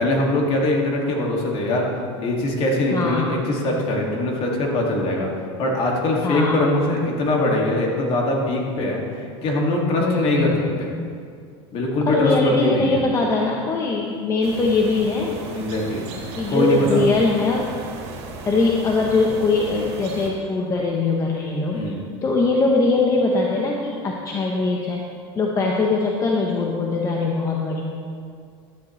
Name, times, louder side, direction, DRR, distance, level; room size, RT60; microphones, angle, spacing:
voice 1, 0.0-1.9 2.2-5.3 5.6-10.5 10.8-10.9 11.7-13.0 15.5-16.1 16.5-17.0 21.7-22.0, left 1 dB, 45° left, -1 dB, 2.2 m, -22 dB
voice 2, 2.9-3.4 6.2-6.6 10.0-10.5 12.0-15.4 16.4-17.7 18.5-21.8 22.2-25.0 25.4-27.8, left 3 dB, 25° left, -1 dB, 0.9 m, -21 dB
sound 1, 14.4-20.3, right 3 dB, 75° right, 2.4 m, -36 dB
12.5 x 10.5 x 3.2 m, 2.3 s
supercardioid pair, 130°, 14 cm